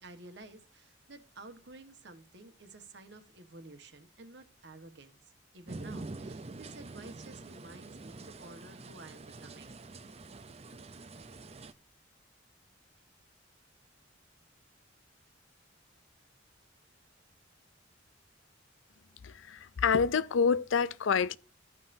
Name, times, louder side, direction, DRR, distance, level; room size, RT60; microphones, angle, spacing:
voice 1, 0.0-5.2 5.5-9.8, right 2 dB, 60° right, 1.4 m, -52 dB
sound 1, 5.7-11.7, right 3 dB, 30° right, 0.6 m, -46 dB
voice 2, 19.2-21.4, left 6 dB, 80° left, 0.5 m, -27 dB
14.5 x 5.5 x 2.7 m
head